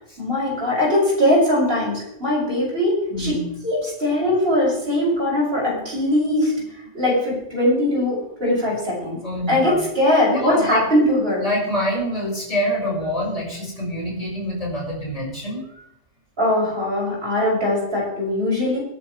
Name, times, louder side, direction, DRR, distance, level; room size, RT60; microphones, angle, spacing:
voice 1, 0.2-3.4 3.6-6.5 6.9-9.2 9.5-11.4 16.4-18.8, left 1 dB, 50° right, -5 dB, 6.9 m, -20 dB
voice 2, 3.1-3.5 5.8-5.9 9.2-9.8 10.3-10.8 11.4-15.8, equal, 30° left, -5 dB, 5.7 m, -26 dB
22.5 x 10.5 x 3.3 m, 0.79 s
omnidirectional pair, 1.2 m